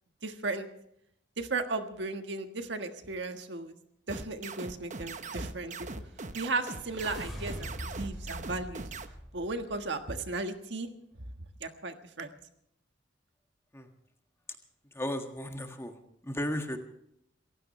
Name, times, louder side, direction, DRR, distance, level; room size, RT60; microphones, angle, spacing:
voice 1, 0.2-0.7 1.4-3.7 4.1-5.9 6.3-8.8 9.3-10.9 11.6-12.3, right 3 dB, 70° right, 6 dB, 1.5 m, -35 dB
sound 1, 4.1-9.1, right 3 dB, 40° right, 1.0 m, -41 dB
sound 2, 6.0-10.2, equal, ahead, 6.1 m, -43 dB
voice 2, 14.9-16.8, left 1 dB, 15° left, 5 dB, 1.7 m, -35 dB
27.5 x 15.5 x 3.2 m, 0.74 s
head